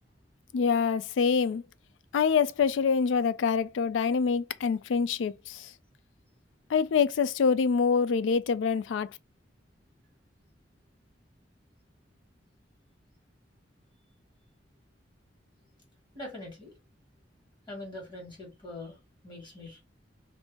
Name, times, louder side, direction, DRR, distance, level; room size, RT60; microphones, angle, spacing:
voice 1, 0.5-1.6 2.1-5.7 6.7-9.1, left 6 dB, 90° left, 0.3 m, -25 dB
voice 2, 16.1-16.7 17.7-19.0 19.2-19.8, left 2 dB, 25° left, 1.7 m, -42 dB
2.9 x 2.6 x 3.4 m
head